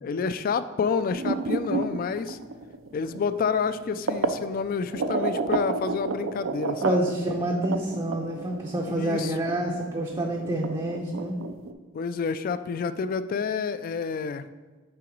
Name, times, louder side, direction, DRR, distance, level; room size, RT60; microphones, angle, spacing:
voice 1, 0.0-2.4 2.9-7.0 8.9-9.3 11.9-14.5, left 5 dB, 45° left, 13 dB, 0.3 m, -29 dB
sound 1, 1.1-4.4 4.9-11.7, right 3 dB, 75° right, 0.5 m, -31 dB
voice 2, 6.8-11.4, right 1 dB, 20° right, 0 dB, 0.5 m, -28 dB
5.7 x 4.0 x 5.2 m, 1.3 s
head